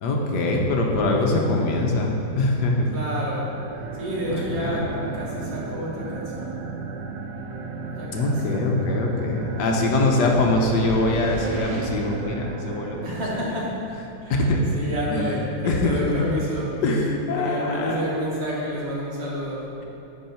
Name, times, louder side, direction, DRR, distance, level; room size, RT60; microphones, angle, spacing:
voice 1, 0.0-2.9 4.3-5.1 8.1-13.2 13.5-13.6 14.5-14.7 15.1-16.3 16.8-18.0, left 2 dB, 70° left, 0 dB, 1.3 m, -23 dB
voice 2, 2.9-3.5 4.0-6.6 7.9-8.5 13.0-13.8 14.2-14.4 14.7-16.7 17.3-19.7, equal, 35° right, -6 dB, 1.8 m, -29 dB
sound 1, 3.4-13.9, right 4 dB, 75° right, 1.3 m, -35 dB
sound 2, 9.6-12.2, right 1 dB, 60° right, 1.5 m, -37 dB
10.5 x 4.7 x 4.4 m, 2.8 s
omnidirectional pair, 2.0 m